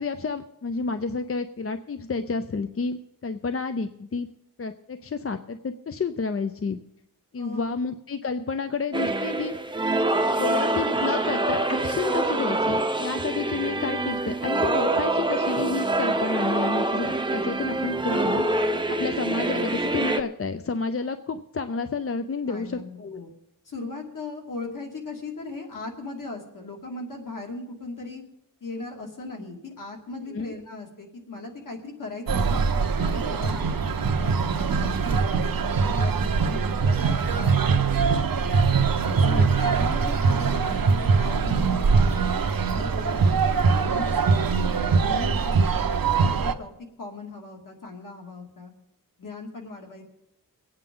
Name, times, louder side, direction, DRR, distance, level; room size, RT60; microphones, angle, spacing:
voice 1, 0.0-4.3 4.6-6.8 7.3-9.6 10.4-18.5 19.0-23.2 30.3-30.5 39.2-39.5, left 4 dB, 40° left, 9 dB, 0.6 m, -30 dB
voice 2, 7.3-7.9 22.5-23.3 23.6-28.2 28.6-32.6 33.0-42.3 42.7-45.9 46.2-46.7 47.0-48.7 49.2-50.0, left 3 dB, 60° left, 1 dB, 2.5 m, -38 dB
sound 1, 8.9-20.2, right 2 dB, 15° right, 0.7 m, -25 dB
sound 2, 32.3-46.5, right 5 dB, 70° right, 0.9 m, -22 dB
23.0 x 8.9 x 3.8 m, 0.83 s
wide cardioid pair, 125°, 36 cm